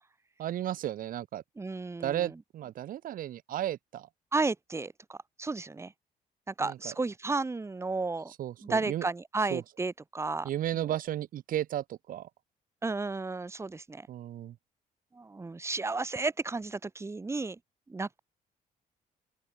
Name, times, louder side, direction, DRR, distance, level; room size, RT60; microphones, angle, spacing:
voice 1, 0.4-1.4 2.0-4.1 6.6-6.9 8.3-9.1 9.5-9.6 10.4-12.3 14.1-14.5, right 12 dB, 70° right, 2.6 m, -34 dB
voice 2, 1.6-2.2 4.3-5.9 6.5-8.3 8.7-10.5 12.8-14.0 15.2-17.6 17.9-18.2, right 3 dB, 20° right, 3.0 m, -33 dB
open air
cardioid pair, 125°, 15 cm